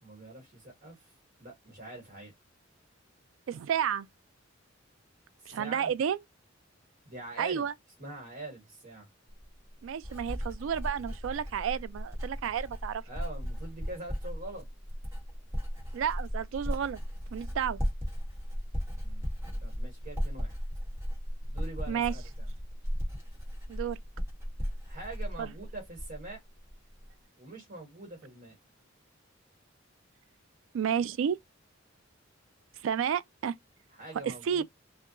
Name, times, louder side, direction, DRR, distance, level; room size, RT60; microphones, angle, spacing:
voice 1, 0.0-1.1 1.4-2.3 5.4-5.9 7.0-7.6 8.0-9.1 13.1-14.6 19.0-19.3 19.6-20.5 21.5-22.5 24.9-26.4 27.4-28.5 33.9-34.6, right 2 dB, 50° right, 1.3 m, -44 dB
voice 2, 3.5-4.1 5.5-6.2 7.4-7.7 9.8-13.0 15.9-17.0 17.3-17.8 21.9-22.1 23.7-24.0 25.4-25.5 30.7-31.4 32.8-33.5 34.2-34.6, right 8 dB, 70° right, 0.3 m, -31 dB
Writing, 9.3-26.3 26.6-27.1, equal, 15° right, 1.1 m, -36 dB
2.7 x 2.3 x 2.4 m
head